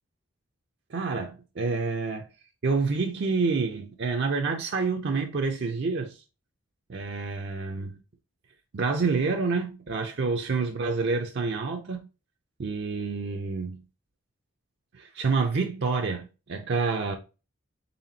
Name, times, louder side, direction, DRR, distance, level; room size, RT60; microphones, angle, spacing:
voice 1, 0.9-2.3 2.6-6.2 6.9-8.0 8.7-12.1 12.6-13.8 14.9-17.2, right 4 dB, 55° right, 0.5 m, -28 dB
4.1 x 3.4 x 2.7 m
head